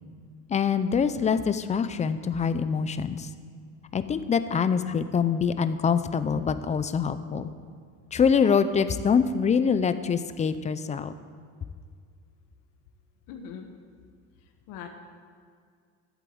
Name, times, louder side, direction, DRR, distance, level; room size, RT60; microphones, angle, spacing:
voice 1, 0.5-3.3 3.9-7.5 8.1-11.1, left 6 dB, 20° left, 12 dB, 0.5 m, -25 dB
voice 2, 13.3-13.7 14.7-14.9, left 7 dB, 75° left, 4 dB, 1.3 m, -40 dB
12.0 x 8.2 x 7.7 m, 2.1 s
cardioid pair, 140°, 33 cm